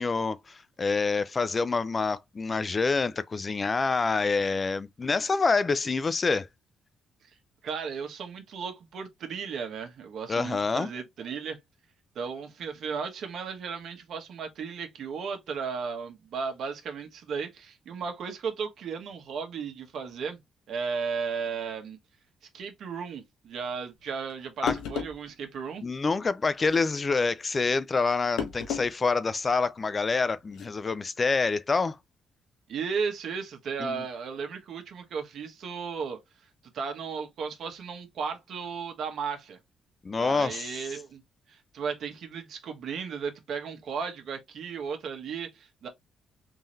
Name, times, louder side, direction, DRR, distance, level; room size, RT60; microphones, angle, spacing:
voice 1, 0.0-6.5 10.3-10.9 24.6-24.8 25.8-32.0 33.8-34.0 40.0-40.8, left 4 dB, 30° left, 0.3 m, -27 dB
voice 2, 7.6-11.6 12.1-20.4 20.7-22.0 22.5-25.9 32.7-36.2 36.7-39.6 40.2-41.2 41.5-45.9, right 6 dB, 65° right, 1.2 m, -35 dB
sound 1, 24.3-24.4 24.7-25.2 26.6-26.9 28.4-28.9 29.3-29.4 30.5-30.7, left 7 dB, 90° left, 1.0 m, -33 dB
3.7 x 2.7 x 3.1 m
cardioid pair, 90°, 0 cm